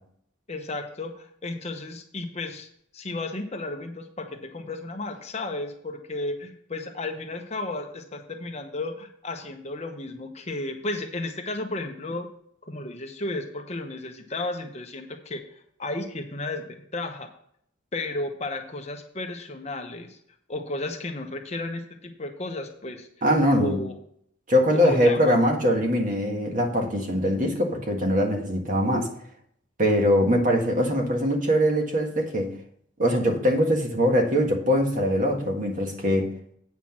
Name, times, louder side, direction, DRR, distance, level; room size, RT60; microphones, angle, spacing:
voice 1, 0.5-2.7 2.9-12.3 12.6-17.3 17.9-20.2 20.5-23.1 23.6-23.9 24.7-25.4, left 2 dB, 30° left, 4 dB, 0.9 m, -33 dB
voice 2, 23.2-23.8 24.5-29.1 29.8-32.5 33.0-36.3, equal, 40° right, 2 dB, 1.6 m, -22 dB
8.6 x 5.9 x 6.0 m, 0.65 s
head